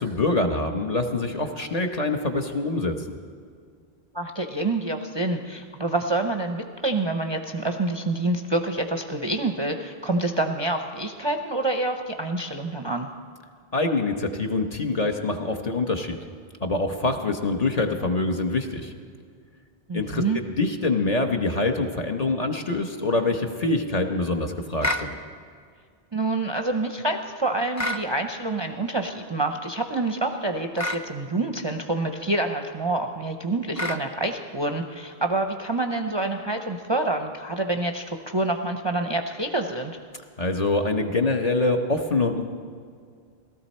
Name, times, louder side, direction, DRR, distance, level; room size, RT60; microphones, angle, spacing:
voice 1, 0.0-3.0 13.7-16.2 16.6-18.9 19.9-25.1 40.4-42.4, left 2 dB, 40° left, 4 dB, 0.8 m, -25 dB
voice 2, 4.1-13.1 19.9-20.4 26.1-40.0, right 2 dB, 35° right, 4 dB, 0.5 m, -27 dB
sound 1, 24.8-25.1 27.7-28.1 30.8-31.0 33.7-34.0, left 1 dB, 25° left, 0.4 m, -27 dB
17.0 x 13.5 x 4.2 m, 2.1 s
omnidirectional pair, 1.0 m